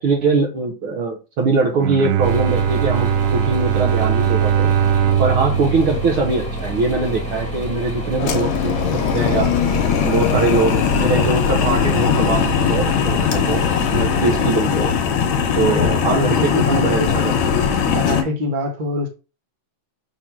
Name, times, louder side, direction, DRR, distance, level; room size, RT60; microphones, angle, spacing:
voice 1, 0.0-4.7 5.2-9.5 10.0-13.6 13.9-14.9 15.6-17.6, right 3 dB, 55° right, 1.6 m, -22 dB
Bowed string instrument, 1.7-7.0, right 9 dB, 80° right, 1.9 m, -20 dB
sound 1, 2.2-14.5, right 1 dB, 5° left, 1.5 m, -28 dB
sound 2, 8.2-18.2, left 7 dB, 65° left, 2.2 m, -19 dB
voice 2, 15.7-17.2 17.9-19.1, left 2 dB, 35° right, 0.7 m, -25 dB
6.6 x 3.7 x 6.2 m
omnidirectional pair, 3.9 m